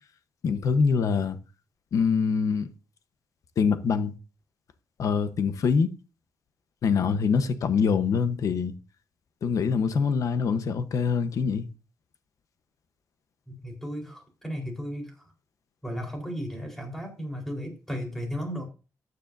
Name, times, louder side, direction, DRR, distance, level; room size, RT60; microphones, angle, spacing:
voice 1, 0.4-1.4 1.9-2.7 3.6-4.1 5.0-5.9 6.8-8.7 9.4-11.7, left 5 dB, 65° left, 1.0 m, -24 dB
voice 2, 13.5-15.3 15.8-18.6, equal, 5° left, 4.1 m, -35 dB
14.0 x 9.7 x 2.7 m
wide cardioid pair, 140°, 6 cm